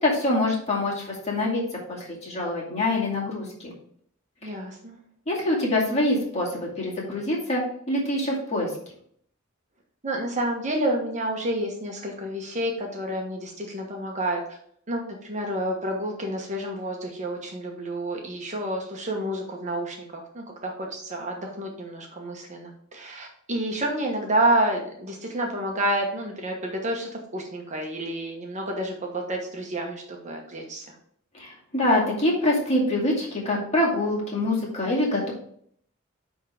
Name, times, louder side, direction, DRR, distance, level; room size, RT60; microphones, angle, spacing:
voice 1, 0.0-1.6 1.9-3.7 4.4-4.5 5.3-8.7 31.3-35.3, left 1 dB, 30° left, -4 dB, 2.3 m, -25 dB
voice 2, 4.4-5.0 10.0-14.4 14.9-30.9, right 1 dB, 35° right, 1 dB, 1.2 m, -29 dB
10.0 x 3.7 x 3.5 m, 0.64 s
head